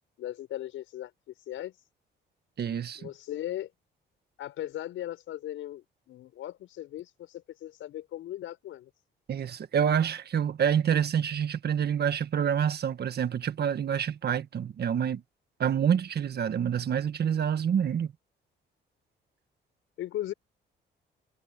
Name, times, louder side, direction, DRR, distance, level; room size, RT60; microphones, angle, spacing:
voice 1, 0.2-1.1 1.5-1.7 2.9-3.7 4.4-8.9 20.0-20.3, left 13 dB, 80° left, 6.9 m, -38 dB
voice 2, 2.6-3.1 9.3-15.2 15.6-18.1, right 8 dB, 55° right, 1.7 m, -27 dB
cardioid pair, 90°, 20 cm